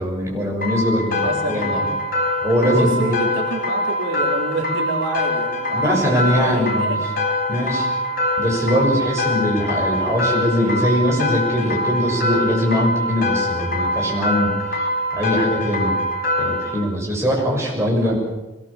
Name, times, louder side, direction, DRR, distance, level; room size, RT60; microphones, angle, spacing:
voice 1, 0.0-1.2 1.5-1.8 2.4-3.2 5.7-7.1 7.5-7.9 8.4-14.9 15.1-15.9 16.4-18.2, equal, 15° right, -3 dB, 6.9 m, -21 dB
sound 1, 0.6-16.7, left 1 dB, 50° left, 4.4 m, -23 dB
voice 2, 1.1-1.9 2.6-7.0 11.6-11.8 17.7-18.2, right 2 dB, 70° right, 1 dB, 3.7 m, -28 dB
23.0 x 19.5 x 7.3 m, 1.0 s
head